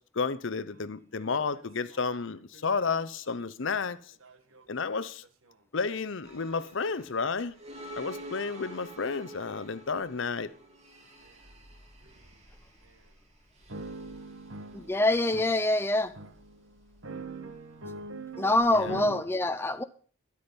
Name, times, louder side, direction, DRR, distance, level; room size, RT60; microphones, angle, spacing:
voice 1, 0.0-4.1 4.7-5.2 5.7-7.5 8.0-10.5 18.7-19.1, left 4 dB, 60° left, 0.7 m, -32 dB
sound 1, 0.7-0.8 1.2-5.5 6.9-7.0 7.7-7.9 8.4-8.8 9.4-9.8 10.4-10.7 11.2-11.4 12.0-12.2 12.8-13.0 13.7-19.2, right 2 dB, 65° right, 1.4 m, -45 dB
sound 2, 6.2-19.0, right 1 dB, 30° right, 2.8 m, -50 dB
voice 2, 14.7-16.1 18.4-19.8, left 1 dB, 10° left, 0.5 m, -25 dB
13.0 x 11.5 x 5.3 m
head